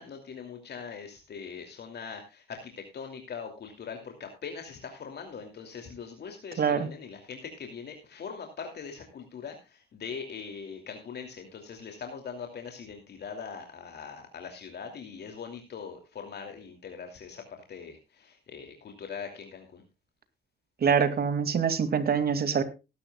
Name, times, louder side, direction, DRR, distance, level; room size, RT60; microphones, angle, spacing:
voice 1, 0.0-19.8, left 6 dB, 55° left, 4 dB, 2.8 m, -41 dB
voice 2, 6.6-6.9 20.8-22.6, right 6 dB, 50° right, 10 dB, 2.4 m, -25 dB
19.0 x 11.5 x 2.3 m, 0.28 s
cardioid pair, 90°, 20 cm